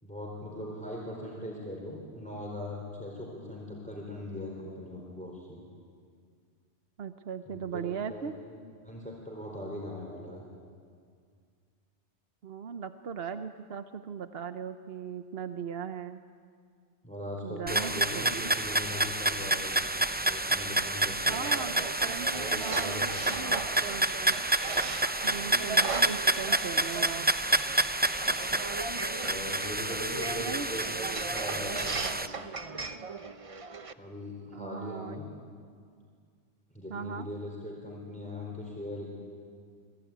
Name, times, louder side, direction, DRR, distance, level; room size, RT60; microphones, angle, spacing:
voice 1, 0.0-5.6 7.5-8.5 8.8-10.4 17.0-19.8 20.3-21.4 22.3-23.6 29.2-32.4 34.0-35.3 36.7-39.2, left 1 dB, 5° left, -2 dB, 4.4 m, -40 dB
voice 2, 7.0-8.3 12.4-16.2 17.4-18.5 21.3-24.4 25.2-27.3 30.4-30.7 34.5-35.2 36.9-37.3, right 7 dB, 60° right, 9 dB, 1.0 m, -38 dB
sound 1, 17.7-32.3, right 2 dB, 15° right, 0.4 m, -29 dB
sound 2, 21.3-33.9, right 4 dB, 30° right, 0.8 m, -38 dB
27.5 x 20.5 x 9.2 m, 2.1 s
omnidirectional pair, 1.2 m